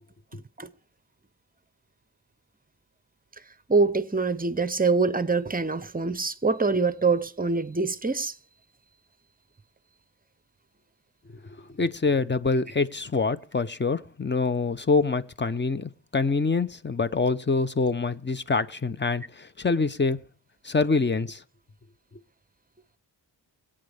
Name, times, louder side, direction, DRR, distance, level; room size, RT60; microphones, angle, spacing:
voice 1, 3.7-8.3, right 4 dB, 20° right, 0.7 m, -24 dB
voice 2, 11.7-20.2 20.6-21.4, left 4 dB, 25° left, 0.7 m, -25 dB
22.5 x 8.8 x 3.4 m
wide cardioid pair, 105°, 42 cm